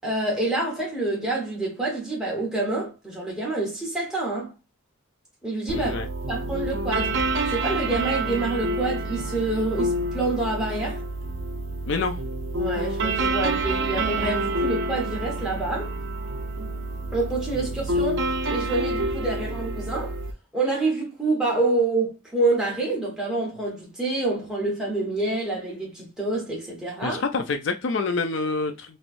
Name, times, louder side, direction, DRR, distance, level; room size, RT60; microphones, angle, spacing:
voice 1, 0.0-4.5 5.4-6.0 6.3-7.2 7.5-11.0 12.5-15.9 17.1-20.2 20.5-27.2, right 2 dB, 5° right, 1.2 m, -27 dB
voice 2, 5.7-6.1 11.9-12.2 27.0-29.0, left 4 dB, 60° left, 0.4 m, -27 dB
sound 1, 5.7-20.3, right 2 dB, 60° right, 0.5 m, -28 dB
3.1 x 3.0 x 2.5 m
head